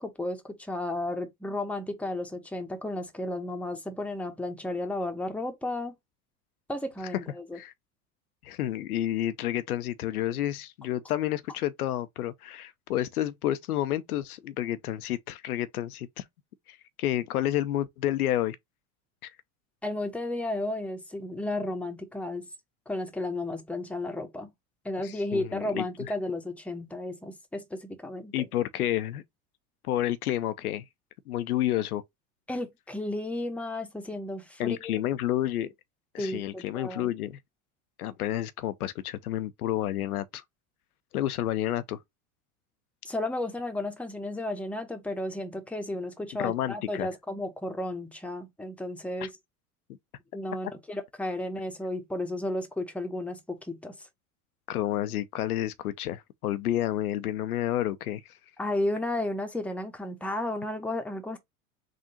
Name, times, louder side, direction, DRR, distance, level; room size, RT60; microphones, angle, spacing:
voice 1, 0.0-5.9 6.7-7.6 19.8-22.5 22.9-24.5 24.8-28.5 32.5-35.0 36.2-37.1 43.0-49.3 50.3-54.1 58.6-61.4, left 1 dB, 5° left, 0.9 m, -33 dB
voice 2, 8.4-16.2 16.7-18.6 19.2-19.3 25.0-25.9 28.3-29.2 29.8-30.9 31.3-32.0 34.6-35.7 36.1-37.4 38.0-40.4 41.1-42.0 46.4-47.1 49.2-49.3 54.7-58.3, left 13 dB, 90° left, 0.6 m, -30 dB
3.7 x 2.5 x 4.2 m
hypercardioid pair, 90°, 43 cm